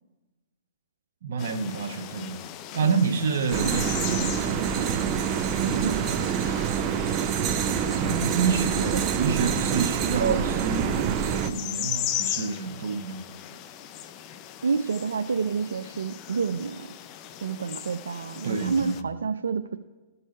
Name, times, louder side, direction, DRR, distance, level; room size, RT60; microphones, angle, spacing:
voice 1, 1.2-2.4 2.7-5.1 7.9-13.3 18.4-19.0, right 5 dB, 65° right, 6 dB, 1.1 m, -28 dB
sound 1, 1.4-19.0, left 11 dB, 35° left, 0.5 m, -38 dB
sound 2, 3.5-11.5, right 8 dB, 30° right, 0.6 m, -26 dB
voice 2, 5.6-6.2 14.6-16.9 17.4-19.8, right 5 dB, 85° right, 8 dB, 0.4 m, -29 dB
13.5 x 5.5 x 5.4 m, 1.2 s
hypercardioid pair, 130°, 0 cm